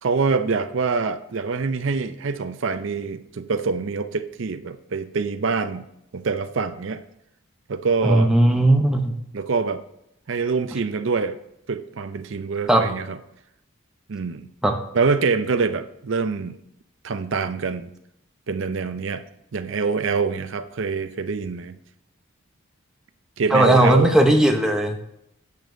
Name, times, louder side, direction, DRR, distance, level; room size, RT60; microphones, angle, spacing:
voice 1, 0.0-5.8 6.1-7.0 7.7-8.3 9.3-9.8 10.3-11.4 11.7-13.2 14.1-14.5 14.9-16.6 17.0-17.9 18.5-19.2 19.5-21.8 23.4-24.2, right 4 dB, 60° right, 0.5 m, -25 dB
voice 2, 8.0-9.1 12.7-12.8 14.6-14.7 23.5-25.0, right 1 dB, 5° right, 0.7 m, -17 dB
9.2 x 6.8 x 2.6 m
head